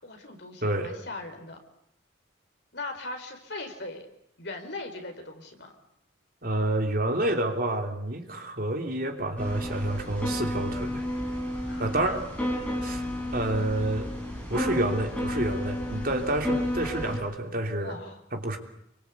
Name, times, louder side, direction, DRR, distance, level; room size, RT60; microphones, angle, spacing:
voice 1, 0.0-1.6 2.7-4.1 4.4-5.7 11.7-12.2 17.8-18.2, left 2 dB, 55° left, 5 dB, 4.4 m, -39 dB
voice 2, 0.6-0.9 6.4-11.0 11.8-12.2 12.8-13.0 13.3-14.1 14.5-18.0 18.3-18.6, right 1 dB, 45° right, 4 dB, 3.2 m, -28 dB
sound 1, 9.4-17.2, left 1 dB, 5° left, 6.0 m, -32 dB
28.0 x 23.5 x 8.4 m, 0.74 s
head